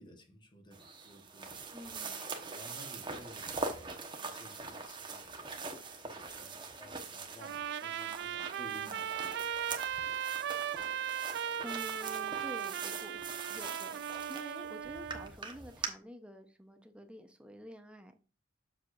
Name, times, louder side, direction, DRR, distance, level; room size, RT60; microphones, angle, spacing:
voice 1, 0.0-1.6 2.5-5.5 6.0-9.7, equal, 25° left, 1.2 m, -55 dB
sound 1, 0.7-15.9, right 4 dB, 25° right, 1.0 m, -43 dB
voice 2, 1.7-2.2 11.1-14.0 14.3-18.2, equal, 5° right, 0.8 m, -49 dB
Trumpet, 7.4-15.3, right 9 dB, 55° right, 0.4 m, -37 dB
7.2 x 6.6 x 2.5 m
head